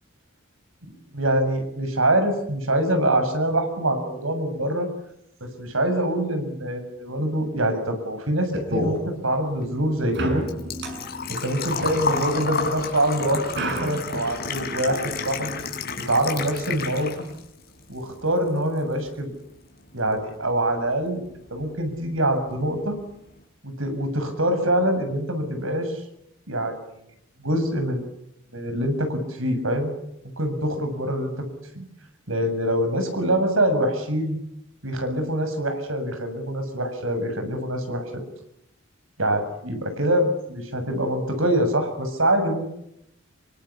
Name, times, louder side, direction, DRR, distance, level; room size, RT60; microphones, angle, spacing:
voice 1, 1.1-4.9 5.4-10.4 11.3-15.6 16.0-17.3 17.9-19.3 19.9-21.2 21.5-23.0 23.6-26.0 26.5-26.8 27.4-28.0 28.5-29.9 30.4-31.5 31.7-31.9 32.3-34.4 34.8-38.2 39.2-42.7, right 1 dB, 80° right, 7 dB, 7.1 m, -24 dB
sound 1, 8.5-9.0 10.1-12.8 13.6-14.0, equal, 55° right, 7.2 m, -30 dB
Engine / Trickle dribble / Fill (with liquid), 9.5-17.5 17.8-18.8 19.1-19.2 21.1-21.2 21.4-21.7 22.1-22.2 22.4-22.5, left 5 dB, 50° left, 5.4 m, -31 dB
28.0 x 24.0 x 8.5 m, 0.78 s
head